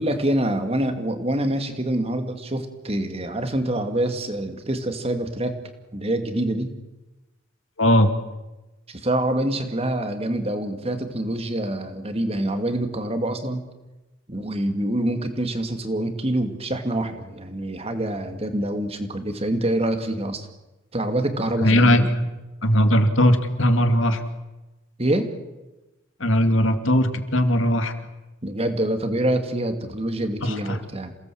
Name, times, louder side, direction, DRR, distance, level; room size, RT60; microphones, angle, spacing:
voice 1, 0.0-5.6 5.9-6.7 8.9-13.6 14.3-20.5 20.9-22.1 25.0-25.3 28.4-31.1, right 1 dB, 30° right, 7 dB, 2.4 m, -26 dB
voice 2, 7.8-8.1 21.6-22.0 22.6-24.2 26.2-27.9 30.4-30.8, equal, 75° left, 8 dB, 2.4 m, -19 dB
28.0 x 18.5 x 7.9 m, 1.1 s
head